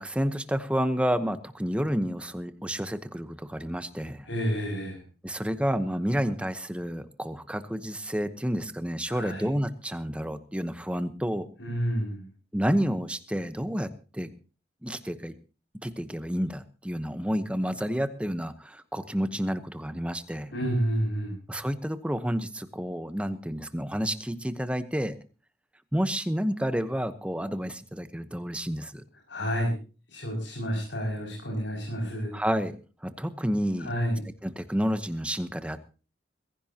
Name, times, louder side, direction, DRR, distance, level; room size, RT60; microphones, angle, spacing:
voice 1, 0.0-4.3 5.2-11.5 12.5-14.3 14.8-15.3 15.8-20.5 21.5-25.2 25.9-29.0 32.3-32.7 33.0-33.9 34.4-35.8, equal, 5° right, 11 dB, 1.0 m, -30 dB
voice 2, 4.2-5.0 9.1-9.5 11.6-12.2 20.5-21.4 29.3-29.7 30.1-32.3 33.8-34.2, equal, 90° left, -2 dB, 6.3 m, -29 dB
22.5 x 15.5 x 2.9 m, 0.35 s
head